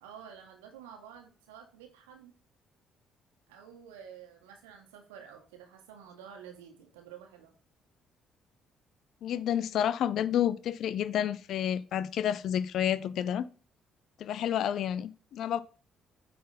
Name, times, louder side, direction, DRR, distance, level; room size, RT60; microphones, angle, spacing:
voice 1, 0.0-2.3 3.5-7.5, right 8 dB, 70° right, 1.5 m, -50 dB
voice 2, 9.2-13.5 14.2-15.6, left 10 dB, 55° left, 0.5 m, -30 dB
9.2 x 4.2 x 4.1 m
figure-of-eight pair, 45°, 0 cm